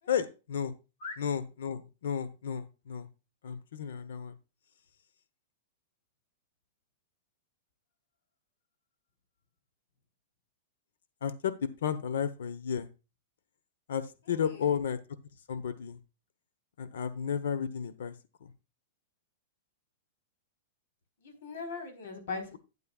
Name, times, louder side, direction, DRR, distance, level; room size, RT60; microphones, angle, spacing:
voice 1, 0.1-0.7 1.2-3.1 3.4-4.3 11.2-12.9 13.9-15.0 15.5-16.0 16.8-18.1 18.4-18.5, left 7 dB, 90° left, 15 dB, 1.0 m, -33 dB
voice 2, 14.3-14.7 21.2-22.5, left 4 dB, 70° left, 6 dB, 3.9 m, -40 dB
12.5 x 8.7 x 2.4 m, 0.29 s
supercardioid pair, 165°, 0 cm